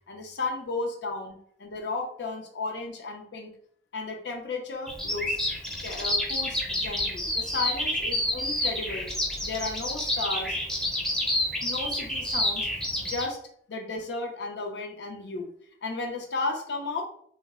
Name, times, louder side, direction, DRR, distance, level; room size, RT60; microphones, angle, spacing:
voice 1, 0.1-3.5 3.9-5.4 5.7-9.1 9.4-10.6 11.6-12.7 13.0-13.4 13.7-15.5 15.8-17.0, left 3 dB, 85° left, 2 dB, 0.6 m, -34 dB
Bird vocalization bird call bird song, 4.9-13.2, left 1 dB, 5° left, 0.4 m, -29 dB
2.1 x 2.0 x 3.5 m, 0.62 s
head